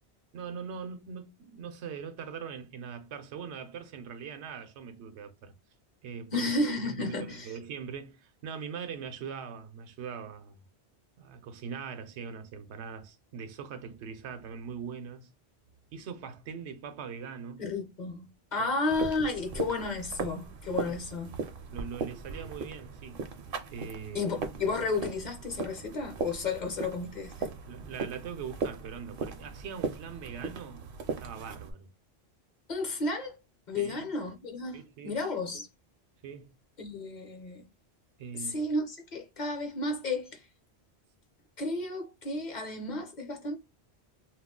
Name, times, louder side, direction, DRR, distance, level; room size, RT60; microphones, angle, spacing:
voice 1, 0.3-5.5 6.0-6.5 6.8-10.6 11.2-15.3 15.9-17.6 18.6-18.7 20.8-21.0 21.7-23.2 23.7-24.3 27.7-30.9 31.2-31.9 33.8-34.1 34.7-35.2 36.2-36.5 38.2-38.6, right 6 dB, 90° right, 0.9 m, -41 dB
voice 2, 6.3-7.6 17.6-21.3 24.1-27.5 32.7-33.4 33.7-35.7 36.8-37.6 38.3-40.5 41.6-43.6, left 3 dB, 50° left, 0.7 m, -32 dB
sound 1, 18.9-31.7, right 5 dB, 65° right, 0.7 m, -38 dB
2.3 x 2.1 x 3.6 m
omnidirectional pair, 1.1 m